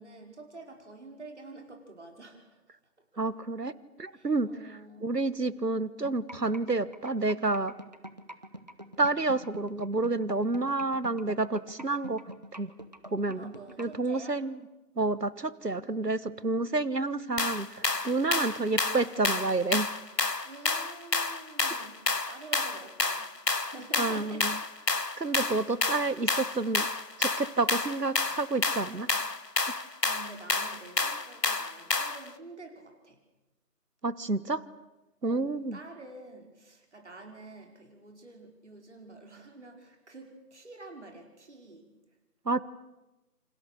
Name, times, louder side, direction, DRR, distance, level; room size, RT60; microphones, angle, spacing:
voice 1, 0.0-2.6 3.1-3.2 4.1-5.1 13.3-14.4 15.8-16.8 20.4-24.5 25.3-25.6 29.7-33.2 35.2-41.9, right 2 dB, 45° right, 3 dB, 5.3 m, -48 dB
voice 2, 3.2-3.7 4.0-7.7 9.0-12.2 12.5-12.7 13.1-13.5 13.8-14.6 14.9-19.9 24.0-24.6 25.2-26.9 27.2-29.1 34.0-34.6 35.2-35.8 42.4-42.6, right 3 dB, 80° right, 18 dB, 1.5 m, -29 dB
sound 1, 6.0-14.0, equal, 25° right, 1.0 m, -44 dB
sound 2, 17.4-32.3, left 3 dB, 90° left, 1.4 m, -30 dB
28.5 x 27.0 x 6.7 m, 1.0 s
figure-of-eight pair, 160°, 47 cm